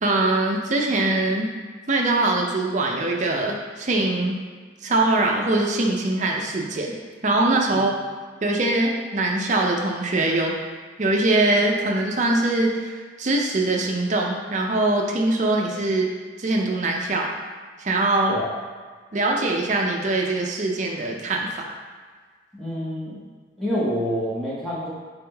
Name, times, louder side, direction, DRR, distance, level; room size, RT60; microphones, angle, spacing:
voice 1, 0.0-1.5 1.9-4.4 4.8-7.0 7.2-7.9 8.4-10.5 11.0-16.1 16.4-17.3 17.8-18.3 19.1-21.7, right 2 dB, 40° right, 1 dB, 0.5 m, -22 dB
voice 2, 22.6-23.2 23.6-24.9, equal, ahead, -9 dB, 0.9 m, -27 dB
4.2 x 3.5 x 3.4 m, 1.5 s
head